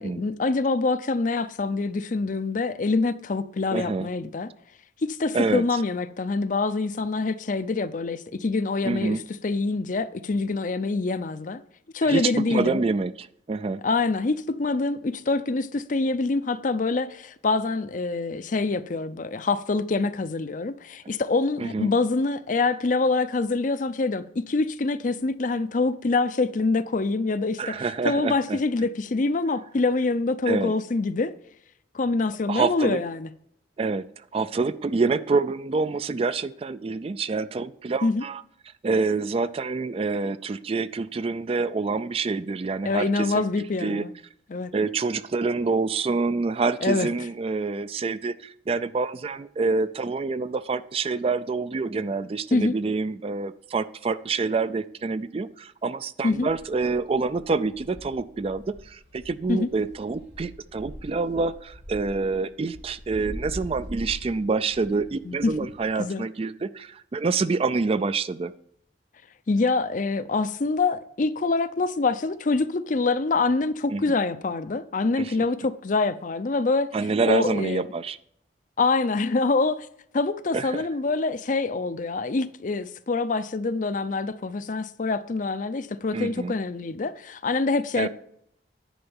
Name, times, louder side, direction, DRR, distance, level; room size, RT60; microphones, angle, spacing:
voice 1, 0.0-4.5 5.0-9.2 9.4-11.6 11.9-12.8 13.8-27.8 28.0-31.3 31.9-33.3 38.0-38.2 42.8-44.1 44.5-44.7 46.8-47.1 52.5-52.8 56.2-56.5 59.5-59.7 65.3-65.5 66.0-66.2 69.5-76.9 77.2-77.9 78.8-79.9 80.1-88.1, left 3 dB, 45° left, 0.5 m, -25 dB
voice 2, 3.7-4.1 5.3-5.6 8.8-9.2 12.0-13.8 21.6-21.9 27.6-28.6 30.5-30.7 32.5-33.0 33.8-38.4 38.8-43.4 43.8-44.0 44.7-68.5 73.9-74.0 75.2-75.3 76.9-78.2 80.5-80.9 86.1-86.5 88.0-88.1, right 4 dB, 35° right, 0.4 m, -27 dB
sound 1, 56.4-65.9, equal, 90° right, 4.2 m, -43 dB
10.5 x 4.5 x 7.1 m
head